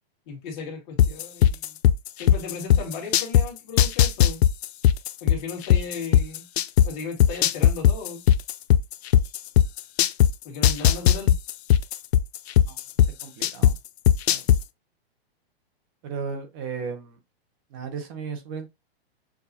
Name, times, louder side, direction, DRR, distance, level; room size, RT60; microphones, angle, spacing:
voice 1, 0.3-1.8 2.2-4.4 5.2-6.5 6.8-8.2 10.4-11.3, left 5 dB, 30° left, 1.7 m, -36 dB
sound 1, 1.0-3.4 3.8-6.9 7.2-10.3 10.6-13.7 14.1-14.6, left 10 dB, 85° left, 0.5 m, -17 dB
voice 2, 13.2-13.7 14.3-14.4 16.0-17.2 17.7-18.7, right 5 dB, 25° right, 0.6 m, -34 dB
6.8 x 2.3 x 2.7 m
hypercardioid pair, 165°, 31 cm